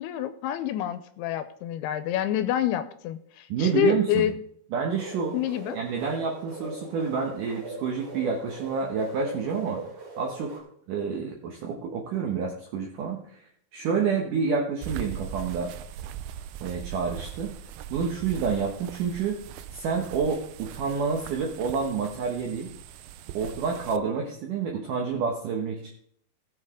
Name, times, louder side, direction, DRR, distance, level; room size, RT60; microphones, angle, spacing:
voice 1, 0.0-4.3 5.3-5.8, left 11 dB, 85° left, 11 dB, 2.6 m, -27 dB
voice 2, 3.5-4.3 4.7-5.4 5.7-9.8 10.2-10.6 10.9-13.4 13.7-15.7 16.6-17.5 17.9-19.4 19.7-22.7 23.3-25.9, right 5 dB, 65° right, 0 dB, 2.3 m, -28 dB
sound 1, 4.9-10.6, right 3 dB, 45° right, 3.3 m, -40 dB
sound 2, 14.8-24.0, right 9 dB, 80° right, 2.2 m, -40 dB
16.5 x 7.1 x 3.6 m, 0.66 s
omnidirectional pair, 4.6 m